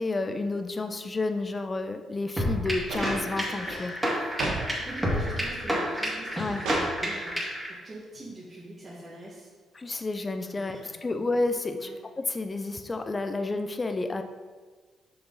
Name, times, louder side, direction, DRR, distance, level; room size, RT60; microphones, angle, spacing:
voice 1, 0.0-3.9 6.3-6.6 9.7-11.9 12.2-14.2, left 2 dB, 25° left, 7 dB, 0.6 m, -30 dB
sound 1, 2.4-7.7, equal, 10° right, 2.2 m, -29 dB
sound 2, 2.9-4.7 5.0-5.6 6.1-7.0 8.2-8.3, right 2 dB, 90° right, 1.5 m, -34 dB
voice 2, 4.8-9.5 10.4-11.1 11.7-12.0, right 2 dB, 30° right, -9 dB, 2.0 m, -43 dB
6.6 x 5.8 x 4.1 m, 1.5 s
cardioid pair, 90°, 0 cm